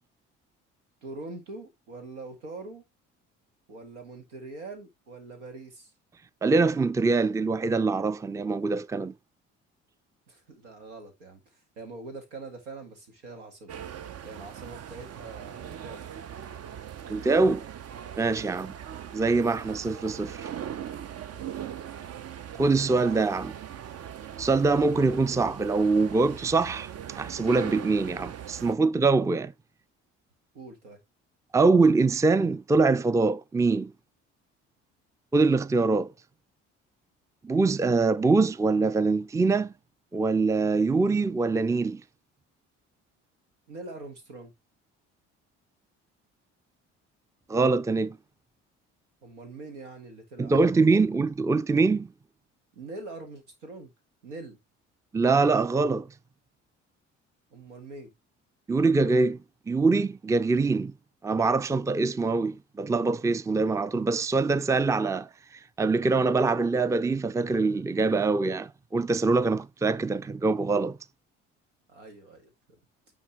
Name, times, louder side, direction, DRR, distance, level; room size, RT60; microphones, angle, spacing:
voice 1, 1.0-2.8 3.7-5.9 10.3-13.7 14.2-16.2 18.4-18.7 21.2-21.7 30.5-31.0 43.7-44.5 49.2-50.9 52.7-53.9 54.2-54.6 57.5-58.1 71.9-72.8, right 3 dB, 90° right, 2.0 m, -43 dB
voice 2, 6.4-9.1 17.1-17.6 18.2-18.7 19.1-20.5 22.6-23.5 24.4-29.5 31.5-33.9 35.3-36.1 37.4-39.7 40.1-42.0 47.5-48.2 50.4-52.1 55.1-56.1 58.7-59.4 59.7-60.9 61.2-65.3 65.8-71.0, right 3 dB, 10° right, 0.5 m, -24 dB
sound 1, 13.7-28.7, right 9 dB, 45° right, 0.7 m, -40 dB
9.8 x 4.7 x 3.2 m
hypercardioid pair, 55°, 34 cm